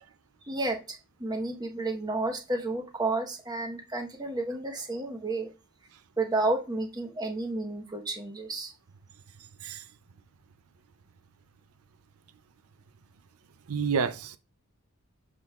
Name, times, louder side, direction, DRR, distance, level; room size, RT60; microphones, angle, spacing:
voice 1, 0.4-5.5 6.2-8.7, right 2 dB, 20° right, 1.0 m, -31 dB
voice 2, 13.7-14.4, right 6 dB, 85° right, 0.5 m, -29 dB
7.2 x 6.1 x 2.4 m
head